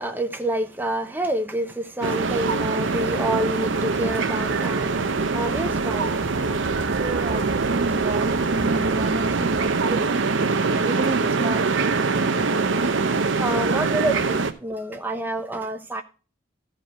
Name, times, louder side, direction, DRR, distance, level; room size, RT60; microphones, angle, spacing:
voice 1, 0.0-7.4 7.9-8.4 13.4-16.0, right 1 dB, 10° right, 0.8 m, -29 dB
sound 1, 2.0-14.5, right 4 dB, 70° right, 0.7 m, -23 dB
voice 2, 7.0-10.2 10.9-12.1 14.3-14.4, right 3 dB, 30° right, 0.4 m, -31 dB
13.5 x 5.2 x 4.4 m
head